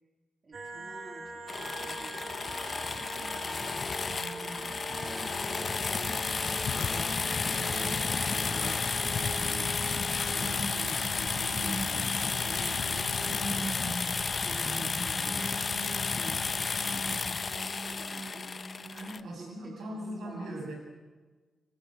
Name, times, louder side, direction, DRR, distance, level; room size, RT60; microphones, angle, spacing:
voice 1, 0.4-3.4 4.2-7.2 7.5-9.7 10.3-13.8 14.4-15.5 15.9-18.6 19.0-20.0 20.2-20.7, right 2 dB, 35° right, 2 dB, 3.1 m, -50 dB
sound 1, 0.5-19.0, right 2 dB, 50° right, 2.4 m, -42 dB
sound 2, 1.5-19.2, left 4 dB, 40° left, 0.9 m, -32 dB
sound 3, 6.4-14.0, left 6 dB, 70° left, 3.5 m, -42 dB
voice 2, 18.8-20.8, equal, 80° right, 1 dB, 7.7 m, -40 dB
27.0 x 18.5 x 8.1 m, 1.4 s
cardioid pair, 95°, 0 cm